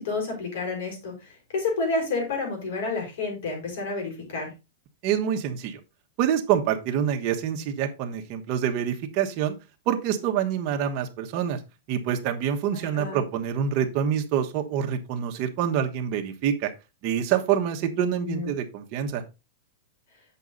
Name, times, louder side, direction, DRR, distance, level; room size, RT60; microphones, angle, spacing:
voice 1, 0.0-4.5 12.7-13.2 18.1-18.5, left 3 dB, 65° left, 3 dB, 5.4 m, -30 dB
voice 2, 5.0-5.8 6.2-9.6 9.9-11.6 11.9-16.7 17.0-19.2, right 9 dB, 35° right, 3 dB, 1.2 m, -26 dB
8.2 x 6.1 x 4.0 m, 0.26 s
supercardioid pair, 170°, 0 cm